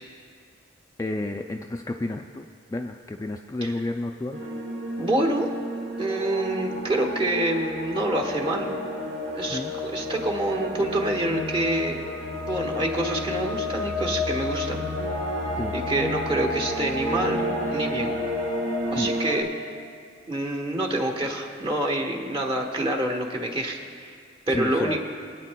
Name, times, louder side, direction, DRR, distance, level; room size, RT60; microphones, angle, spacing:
voice 1, 1.0-4.4 9.5-9.7 15.6-15.8 18.9-19.1 24.5-25.0, left 2 dB, 15° left, 4 dB, 0.3 m, -31 dB
sound 1, 4.3-19.4, left 1 dB, 75° right, 1.9 m, -30 dB
voice 2, 5.0-5.5 6.0-8.8 9.3-12.0 12.5-14.9 15.7-17.4 17.7-18.2 18.9-19.8 20.3-24.1 24.5-25.1, right 1 dB, 30° right, 1 dB, 1.3 m, -27 dB
24.5 x 8.9 x 2.2 m, 2.2 s
head